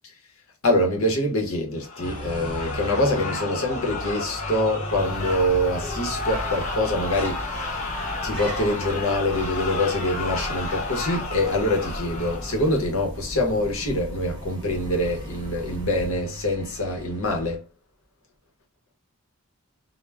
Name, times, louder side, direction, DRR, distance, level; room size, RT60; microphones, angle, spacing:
voice 1, 0.6-7.9 8.2-17.6, left 1 dB, 70° left, 0.8 m, -25 dB
sound 1, 1.8-12.8, left 3 dB, 35° left, 0.4 m, -32 dB
sound 2, 2.0-17.6, equal, 20° right, 0.5 m, -41 dB
sound 3, 4.6-16.4, equal, 10° left, 0.8 m, -38 dB
2.2 x 2.1 x 3.3 m
head